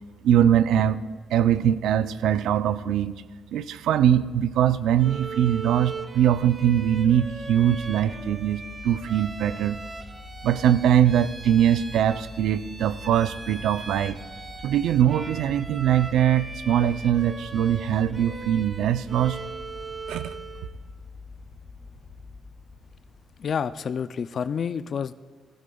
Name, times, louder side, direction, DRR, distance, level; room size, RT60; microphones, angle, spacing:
voice 1, 0.2-1.0 1.3-3.1 3.5-9.8 10.4-14.2 14.6-19.4 20.1-20.4, right 10 dB, 80° right, 13 dB, 0.4 m, -22 dB
Bowed string instrument, 5.0-20.8, right 4 dB, 30° right, 0.9 m, -40 dB
sound 1, 7.1-23.7, left 4 dB, 35° left, 2.0 m, -45 dB
voice 2, 23.4-25.1, left 7 dB, 55° left, 14 dB, 0.3 m, -29 dB
16.0 x 16.0 x 2.3 m, 1.4 s
cardioid pair, 90°, 0 cm